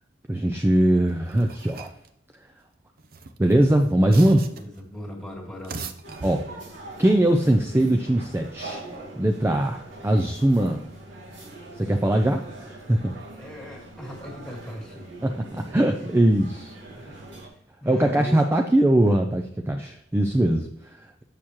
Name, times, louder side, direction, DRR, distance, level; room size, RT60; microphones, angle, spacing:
voice 1, 0.3-1.9 3.4-4.4 6.2-6.5 7.0-8.8 9.2-10.8 11.8-13.1 15.2-17.2 17.8-21.2, right 1 dB, 15° right, 4 dB, 0.4 m, -21 dB
sound 1, 1.1-2.1 3.0-4.8 5.5-6.8, right 4 dB, 50° right, 0.6 m, -40 dB
voice 2, 4.4-5.9 13.3-15.1 17.1-18.4, left 1 dB, 5° left, -2 dB, 2.0 m, -39 dB
sound 2, 6.0-17.5, right 2 dB, 85° right, 2.2 m, -43 dB
7.2 x 6.7 x 3.0 m, 0.78 s
head